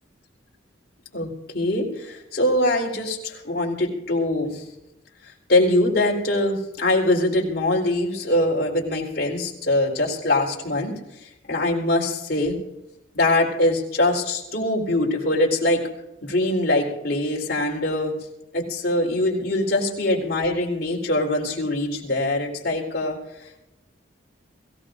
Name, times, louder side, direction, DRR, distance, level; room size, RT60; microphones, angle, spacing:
voice 1, 1.1-4.5 5.5-11.0 11.5-12.6 13.1-15.8 16.2-18.1 18.5-23.2, left 1 dB, 55° left, -2 dB, 4.0 m, -23 dB
24.5 x 16.5 x 2.6 m, 0.90 s
head